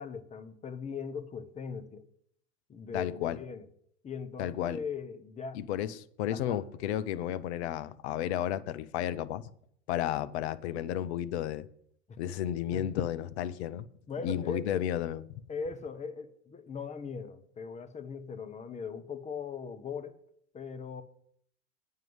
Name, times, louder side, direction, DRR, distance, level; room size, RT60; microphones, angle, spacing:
voice 1, 0.0-2.1 2.7-3.7 4.0-5.6 6.3-6.6 12.1-12.2 12.7-12.9 14.1-14.9 15.5-20.2 20.5-21.0, left 5 dB, 20° left, 0.8 m, -39 dB
voice 2, 2.9-3.4 4.4-4.8 5.5-9.5 9.9-11.7 12.2-13.9 14.2-15.2, left 11 dB, 60° left, 0.7 m, -32 dB
9.1 x 5.6 x 7.8 m
hypercardioid pair, 85°, 37 cm